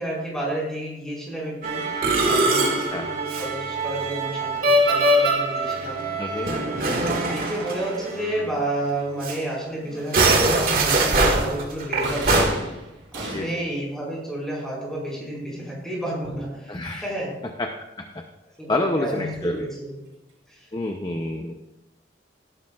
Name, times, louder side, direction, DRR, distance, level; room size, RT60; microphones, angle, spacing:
voice 1, 0.0-1.9 2.3-6.1 7.1-12.6 13.1-17.3 18.6-20.0 20.5-20.7, right 1 dB, 5° left, -5 dB, 4.8 m, -31 dB
Musical instrument, 1.6-8.5 8.8-8.9 9.2-9.4 10.0-12.5, right 2 dB, 50° right, 2.0 m, -22 dB
voice 2, 2.8-3.2 6.2-6.6 13.3-13.6 16.7-17.1 17.6-17.7 18.0-18.2 18.7-19.7 20.7-21.5, left 2 dB, 25° left, 3 dB, 0.7 m, -28 dB
sound 1, 12.0-13.8, right 2 dB, 70° right, 4.8 m, -34 dB
18.0 x 11.5 x 2.4 m, 0.95 s
head